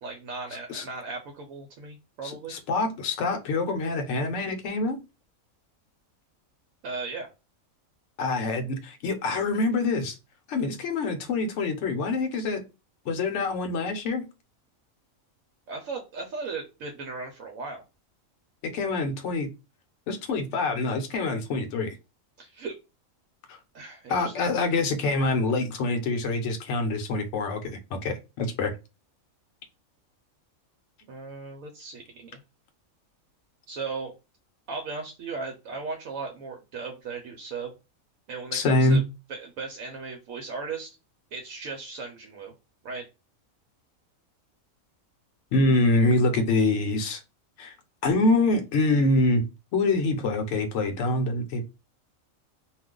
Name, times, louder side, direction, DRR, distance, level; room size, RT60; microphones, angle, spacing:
voice 1, 0.0-2.5 6.8-7.3 15.7-17.8 22.4-22.8 23.7-24.3 31.0-32.4 33.7-34.1 34.7-37.7 38.3-39.0 39.3-41.0 41.3-42.5 42.8-43.1, right 4 dB, 75° right, 2 dB, 1.0 m, -37 dB
voice 2, 2.2-5.0 8.2-10.2 10.5-12.6 13.1-14.2 18.7-19.5 20.1-22.0 23.5-23.6 24.1-27.6 28.0-28.7 38.5-39.0 45.5-47.2 47.6-47.7 48.0-49.4 49.7-51.6, left 2 dB, 65° left, 5 dB, 0.9 m, -25 dB
2.4 x 2.3 x 3.6 m, 0.27 s
omnidirectional pair, 1.5 m